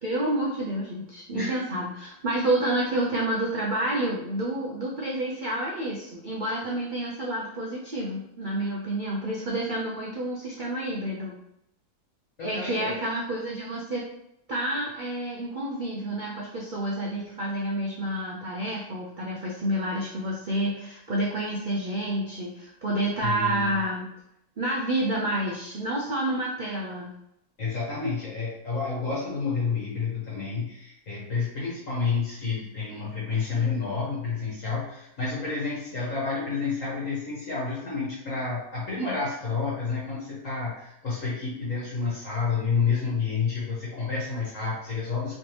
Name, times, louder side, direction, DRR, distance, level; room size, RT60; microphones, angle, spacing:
voice 1, 0.0-11.4 12.4-14.1 14.5-24.1 24.6-27.1, right 1 dB, 70° right, -4 dB, 0.4 m, -29 dB
voice 2, 12.4-13.0 23.2-23.7 27.6-45.4, left 5 dB, 60° left, -7 dB, 1.4 m, -29 dB
3.3 x 3.3 x 2.9 m, 0.79 s
omnidirectional pair, 1.7 m